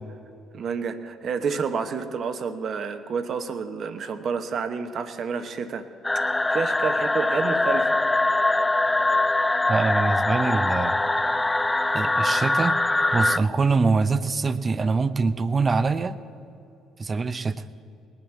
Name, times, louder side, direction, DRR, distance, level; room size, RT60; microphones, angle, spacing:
voice 1, 0.5-5.9 6.5-7.9, right 5 dB, 55° right, 8 dB, 1.1 m, -29 dB
sound 1, 6.0-13.4, left 2 dB, 15° left, 0.5 m, -23 dB
voice 2, 9.7-11.0 11.9-12.8 13.1-16.2 17.0-17.6, right 4 dB, 35° right, 14 dB, 0.7 m, -24 dB
19.5 x 7.8 x 7.3 m, 2.6 s
hypercardioid pair, 55°, 0 cm